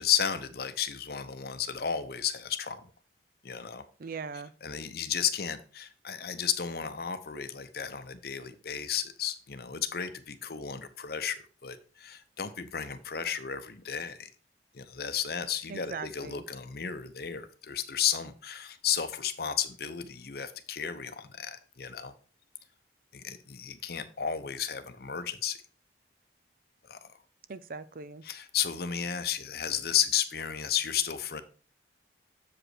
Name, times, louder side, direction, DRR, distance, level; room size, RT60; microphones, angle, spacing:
voice 1, 0.0-2.9 3.4-3.8 4.6-14.3 14.7-22.1 23.1-25.6 26.9-27.1 28.2-31.4, left 8 dB, 60° left, 11 dB, 0.7 m, -33 dB
voice 2, 4.0-4.5 15.7-16.4 27.5-28.2, right 4 dB, 50° right, 15 dB, 0.5 m, -40 dB
7.4 x 5.1 x 4.7 m, 0.39 s
head